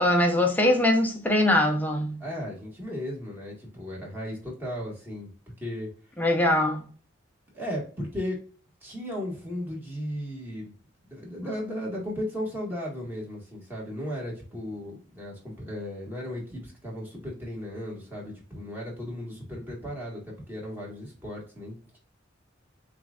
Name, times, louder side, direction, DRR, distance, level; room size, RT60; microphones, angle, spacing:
voice 1, 0.0-2.2 6.2-6.8, left 1 dB, 10° left, 0.8 m, -22 dB
voice 2, 2.2-5.3 5.6-5.9 7.5-8.4 8.8-10.7 11.1-22.0, equal, 10° right, 1.7 m, -35 dB
7.5 x 2.5 x 2.4 m
head